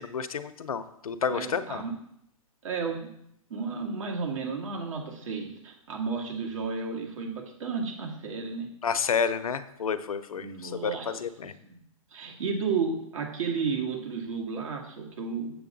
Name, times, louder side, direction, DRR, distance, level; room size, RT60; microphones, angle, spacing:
voice 1, 0.0-1.8 8.8-11.5, left 6 dB, 80° left, 13 dB, 0.7 m, -30 dB
voice 2, 1.3-2.0 2.6-3.1 3.5-8.7 10.3-11.2 11.6-11.8 12.1-15.5, right 5 dB, 65° right, 0 dB, 2.3 m, -32 dB
7.8 x 6.8 x 4.0 m, 0.74 s
hypercardioid pair, 125°, 18 cm